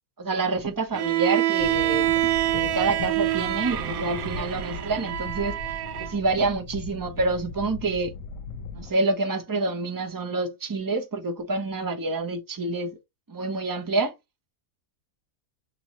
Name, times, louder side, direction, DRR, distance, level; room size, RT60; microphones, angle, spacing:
voice 1, 0.2-2.1 2.5-5.6 6.0-8.1 8.7-13.0 13.3-14.1, right 3 dB, 30° right, 0.3 m, -27 dB
Bowed string instrument, 0.9-6.2, right 14 dB, 70° right, 1.1 m, -26 dB
sound 1, 1.6-8.9, left 4 dB, 65° left, 1.0 m, -38 dB
6.0 x 2.0 x 2.8 m
omnidirectional pair, 1.6 m